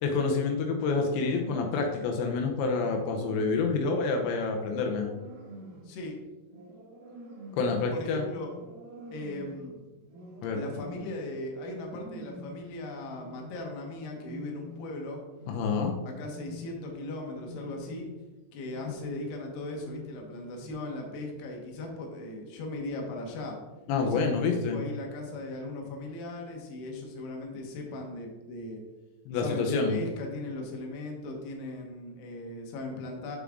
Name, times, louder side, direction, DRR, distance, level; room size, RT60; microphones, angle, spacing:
voice 1, 0.0-5.1 7.6-8.2 10.4-10.6 15.5-16.0 23.9-24.8 29.3-30.0, left 4 dB, 90° left, 2 dB, 3.2 m, -28 dB
sound 1, 1.1-1.9 2.7-4.0 4.7-5.9 6.5-7.9 8.4-9.7 10.1-11.2 11.6-12.6 13.0-13.6 14.1-15.0 15.3-15.8 16.1-16.9 17.3-18.2 18.6-19.4 19.7-20.3 20.6-20.7, right 1 dB, 70° right, 2.9 m, -46 dB
voice 2, 5.8-6.1 7.9-8.5 9.1-9.8 10.5-15.2 16.1-18.1 18.5-23.6 24.0-24.2 24.7-28.8 29.3-33.4, left 2 dB, 70° left, 1 dB, 3.3 m, -38 dB
7.3 x 7.1 x 3.7 m, 1.1 s
omnidirectional pair, 5.0 m